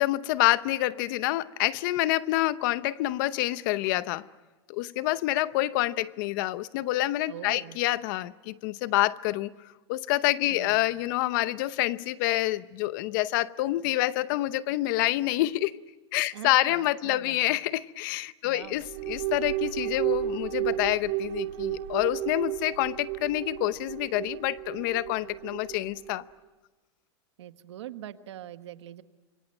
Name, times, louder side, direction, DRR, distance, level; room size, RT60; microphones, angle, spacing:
voice 1, 0.0-4.2 4.7-9.5 9.9-15.8 16.1-26.2, left 17 dB, 45° left, 0.8 m, -27 dB
voice 2, 7.3-7.8 10.5-11.0 16.3-17.4 18.4-18.8 27.4-29.0, right 12 dB, 90° right, 1.5 m, -43 dB
sound 1, 18.6-26.2, right 14 dB, 50° right, 2.8 m, -33 dB
26.5 x 23.5 x 9.0 m
supercardioid pair, 165°, 14 cm